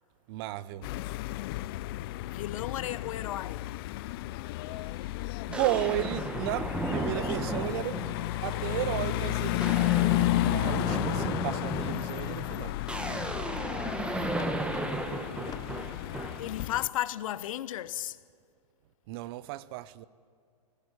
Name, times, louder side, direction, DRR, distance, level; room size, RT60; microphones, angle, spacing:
voice 1, 0.3-0.9 5.5-8.1 8.4-9.9 10.4-12.8 19.1-20.1, right 16 dB, 40° right, 0.7 m, -34 dB
sound 1, 0.8-16.9, left 17 dB, 35° left, 0.5 m, -32 dB
voice 2, 2.3-3.7 13.8-14.4 16.1-18.2, left 13 dB, 55° left, 0.8 m, -35 dB
sound 2, 4.7-4.8 5.5-8.4 8.8-9.1 9.4-16.5, right 1 dB, 5° right, 1.4 m, -35 dB
sound 3, 8.0-8.2 8.7-9.6 10.0-10.1 10.4-11.1 12.2-12.9 13.3-14.9 15.5-16.2, left 8 dB, 20° left, 1.2 m, -50 dB
20.0 x 17.5 x 9.7 m
hypercardioid pair, 135°, 20 cm